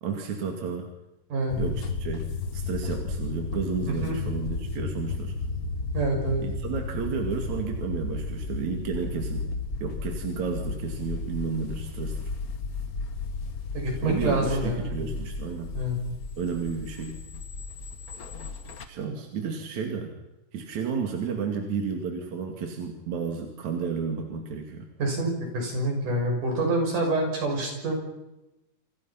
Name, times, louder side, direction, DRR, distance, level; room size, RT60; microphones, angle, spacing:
voice 1, 0.0-0.9 1.6-5.3 6.4-9.5 9.8-12.3 14.0-15.7 16.4-17.2 18.9-20.2 20.5-24.9, right 5 dB, 65° right, 3 dB, 3.7 m, -32 dB
voice 2, 1.3-1.7 3.9-4.2 5.9-6.4 13.7-15.1 15.7-16.0 25.0-27.9, right 2 dB, 90° right, 2 dB, 7.7 m, -27 dB
sound 1, 1.5-18.9, left 3 dB, 45° left, 1.2 m, -34 dB
28.5 x 25.5 x 5.9 m, 0.97 s
omnidirectional pair, 3.5 m